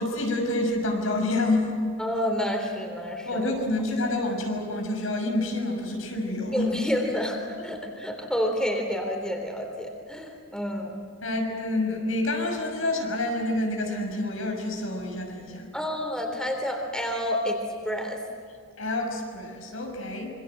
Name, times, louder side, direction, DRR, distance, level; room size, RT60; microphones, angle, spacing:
voice 1, 0.0-1.7 3.2-6.8 11.2-15.7 18.8-20.3, left 2 dB, 85° left, 2 dB, 6.3 m, -28 dB
voice 2, 2.0-3.5 6.5-11.0 15.7-17.6 17.8-18.2, equal, 5° left, 2 dB, 3.4 m, -29 dB
27.0 x 25.0 x 7.9 m, 2.1 s
head